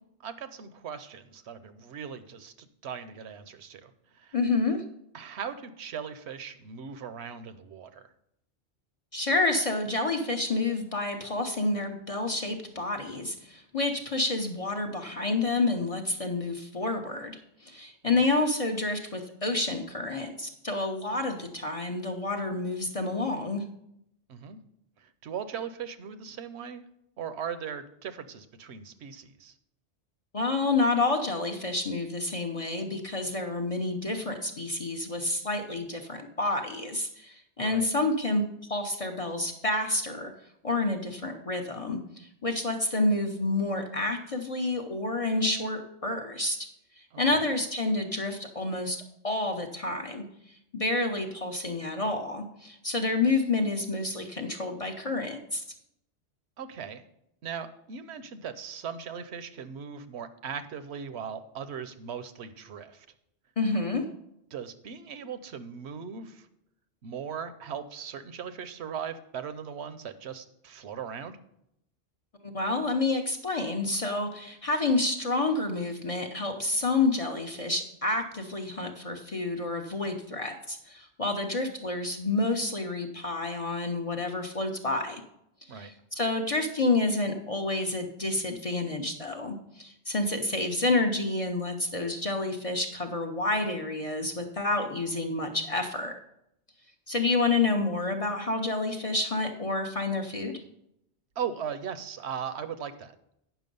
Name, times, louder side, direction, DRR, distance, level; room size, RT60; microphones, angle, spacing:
voice 1, 0.2-4.4 5.1-8.1 18.2-18.3 24.3-24.6 25.0-26.8 27.2-29.5 37.6-37.9 47.1-47.5 56.6-57.0 57.4-63.1 64.5-66.5 67.0-71.4 85.7-85.9 101.4-103.1, right 7 dB, 75° right, 11 dB, 1.0 m, -39 dB
voice 2, 4.3-4.8 9.1-23.6 30.3-38.4 38.7-40.3 40.6-46.6 47.0-50.2 50.7-55.6 63.6-64.0 72.4-85.2 85.7-96.1 97.1-100.6, left 2 dB, 35° left, 3 dB, 0.7 m, -29 dB
9.1 x 6.1 x 5.3 m, 0.78 s
omnidirectional pair, 1.1 m